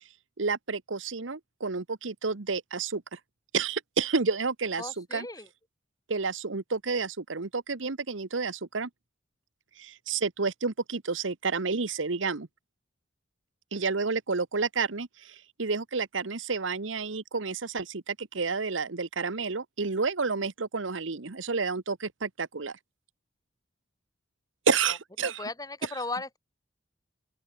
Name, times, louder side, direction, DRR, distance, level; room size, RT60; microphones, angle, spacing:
voice 1, 0.4-3.2 3.5-5.3 6.1-8.9 9.8-12.5 13.7-22.8 24.7-25.4 25.8-25.9, right 4 dB, 85° right, 1.1 m, -30 dB
voice 2, 4.8-5.5 25.2-26.4, left 3 dB, 20° left, 2.6 m, -36 dB
open air
head